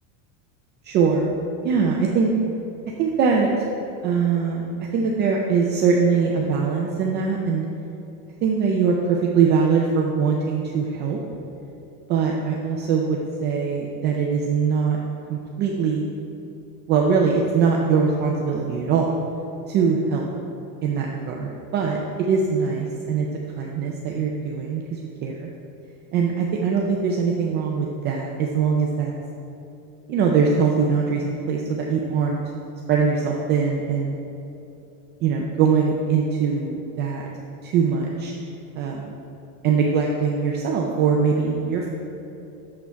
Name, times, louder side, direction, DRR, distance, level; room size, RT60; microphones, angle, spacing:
voice 1, 0.8-1.3 1.6-2.3 3.0-3.5 4.0-4.7 4.9-7.7 8.4-11.2 12.1-15.0 15.3-16.0 16.9-19.2 19.7-20.3 20.8-23.3 23.6-25.5 26.1-29.1 30.1-32.4 32.9-34.1 35.2-37.2 37.6-38.3 38.8-39.1 39.6-41.9, right 5 dB, 25° right, -1 dB, 0.4 m, -22 dB
8.6 x 7.0 x 4.5 m, 2.9 s
supercardioid pair, 160°, 43 cm